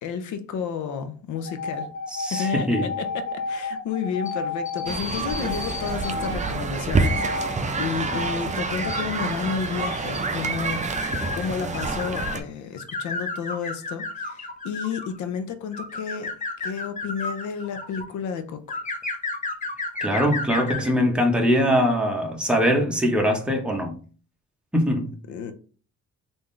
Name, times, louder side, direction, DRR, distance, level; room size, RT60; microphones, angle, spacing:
voice 1, 0.0-1.9 2.3-10.8 11.3-16.3 16.6-18.8 25.3-25.5, left 6 dB, 70° left, 0.6 m, -31 dB
sound 1, 1.4-6.3 7.0-7.6 8.1-8.4 8.8-12.4 12.8-15.2 15.7-18.0 18.7-20.9, left 3 dB, 25° left, 0.8 m, -32 dB
voice 2, 2.1-2.8 20.0-23.9 24.7-25.1, equal, 5° right, 0.9 m, -22 dB
sound 2, 4.9-12.4, right 4 dB, 25° right, 0.5 m, -27 dB
3.6 x 2.6 x 3.1 m
cardioid pair, 90°, 30 cm